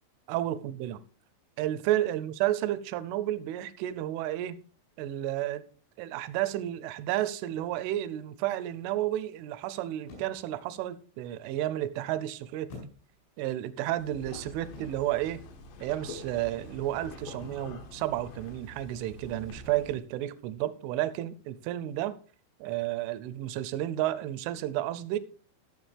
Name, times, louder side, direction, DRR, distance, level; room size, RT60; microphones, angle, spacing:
voice 1, 0.3-1.0 1.6-4.6 5.0-5.7 6.0-12.7 13.4-15.4 15.8-22.2 22.6-25.2, right 13 dB, 85° right, 3.1 m, -31 dB
sound 1, 7.9-8.0 10.0-10.6 12.7-13.4 14.7-15.2 17.4-17.8, left 3 dB, 80° left, 7.1 m, -48 dB
sound 2, 14.0-20.0, left 2 dB, 65° left, 2.3 m, -46 dB
17.0 x 6.6 x 3.4 m
omnidirectional pair, 5.5 m